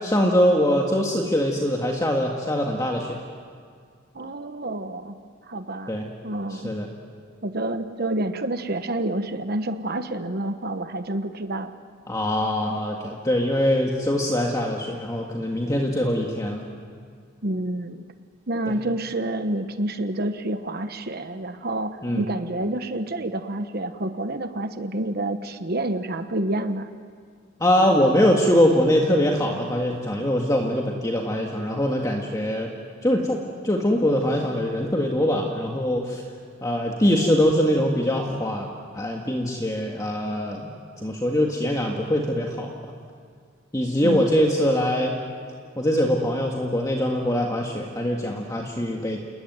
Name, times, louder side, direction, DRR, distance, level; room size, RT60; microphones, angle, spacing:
voice 1, 0.0-3.2 5.9-6.1 6.5-6.9 12.1-16.7 18.7-18.8 22.0-22.2 27.6-32.7 33.0-36.2 36.6-38.7 38.9-40.7 41.0-42.9 43.7-45.2 45.8-49.2, equal, 15° left, 0 dB, 1.9 m, -23 dB
voice 2, 4.1-5.2 5.5-5.9 6.2-6.8 7.4-11.7 17.4-18.0 18.5-26.9 44.0-44.3, right 1 dB, 50° right, 9 dB, 1.2 m, -28 dB
29.5 x 20.5 x 9.5 m, 2.1 s
head